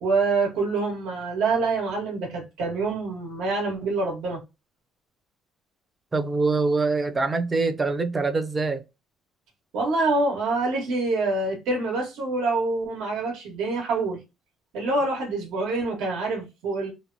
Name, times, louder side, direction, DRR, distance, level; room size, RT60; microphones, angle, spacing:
voice 1, 0.0-4.4 9.7-14.2 14.7-16.9, right 3 dB, 85° right, 1.2 m, -26 dB
voice 2, 6.1-8.8, right 3 dB, 15° right, 0.3 m, -24 dB
2.9 x 2.0 x 2.5 m
cardioid pair, 160°, 0 cm